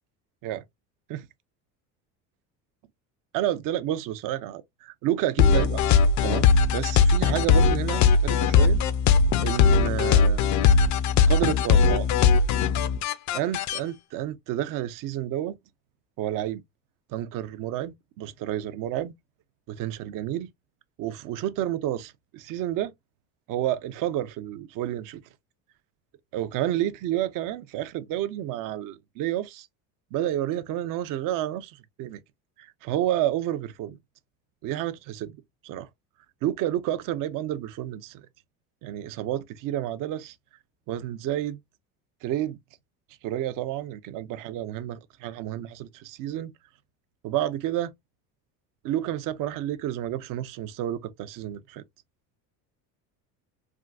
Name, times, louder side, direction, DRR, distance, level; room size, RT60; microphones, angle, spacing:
voice 1, 3.3-5.9 6.2-8.8 9.4-10.4 11.3-12.1 13.3-15.6 16.2-16.6 17.1-19.1 19.7-20.5 21.0-22.9 23.5-25.2 26.3-29.7 30.1-32.2 32.6-34.0 34.6-35.4 35.6-35.9 36.4-38.2 38.8-40.3 40.9-41.6 42.2-42.6 43.2-46.5 47.2-47.9 48.8-51.8, right 12 dB, 55° right, 0.6 m, -30 dB
sound 1, 5.4-13.8, left 5 dB, 45° left, 0.4 m, -20 dB
3.5 x 2.5 x 2.3 m
cardioid pair, 120°, 40 cm